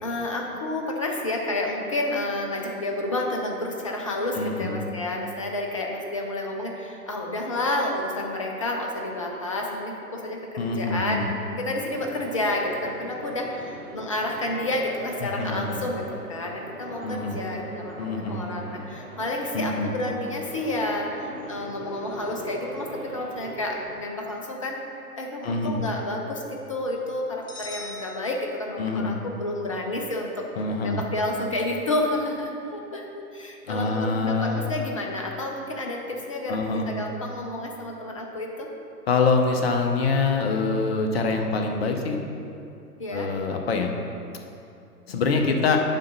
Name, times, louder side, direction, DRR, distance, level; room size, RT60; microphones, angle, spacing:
voice 1, 0.0-11.2 11.5-16.0 16.3-24.8 25.2-30.5 30.8-38.7 43.0-43.3, left 1 dB, 20° left, 1 dB, 0.4 m, -30 dB
voice 2, 4.3-4.8 10.6-11.3 15.2-15.9 17.0-17.4 18.0-18.4 19.5-19.9 25.4-25.8 28.8-29.2 30.6-31.0 33.7-34.6 36.5-36.9 39.1-42.2 43.1-43.9 45.1-45.8, left 4 dB, 40° left, 3 dB, 0.8 m, -25 dB
sound 1, 11.7-23.9, right 1 dB, 50° right, 1.5 m, -41 dB
sound 2, 27.5-29.0, left 1 dB, 65° left, 1.5 m, -41 dB
7.6 x 5.0 x 5.4 m, 2.6 s
figure-of-eight pair, 125°, 47 cm